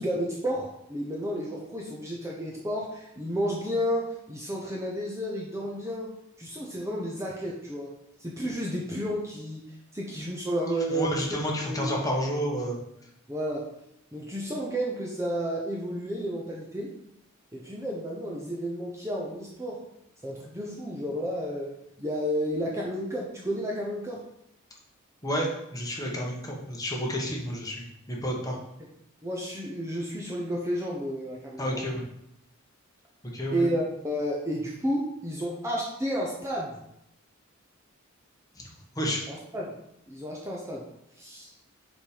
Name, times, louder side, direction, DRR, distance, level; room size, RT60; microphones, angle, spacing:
voice 1, 0.0-6.1 6.4-7.9 8.2-11.2 11.6-12.0 13.3-13.7 14.1-16.9 17.5-19.8 20.2-24.2 29.2-31.8 33.5-36.8 39.3-39.7 40.1-40.9 41.2-41.5, equal, 15° right, -3 dB, 0.9 m, -31 dB
voice 2, 10.9-12.8 25.2-28.6 31.6-32.0 33.3-33.7 38.6-38.7 38.9-39.2, equal, 15° left, -2 dB, 1.5 m, -30 dB
5.9 x 5.1 x 5.1 m, 0.80 s
head